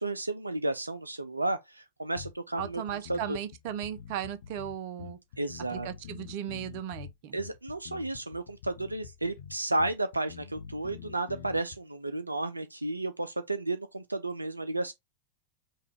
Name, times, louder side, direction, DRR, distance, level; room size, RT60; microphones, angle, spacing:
voice 1, 0.0-3.4 5.4-5.9 7.3-14.9, right 2 dB, 85° right, 0.3 m, -32 dB
sound 1, 2.2-11.8, left 7 dB, 60° left, 0.6 m, -46 dB
voice 2, 2.5-5.2 5.7-7.4, right 10 dB, 50° right, 0.6 m, -36 dB
5.5 x 2.4 x 3.4 m
figure-of-eight pair, 90°, 0 cm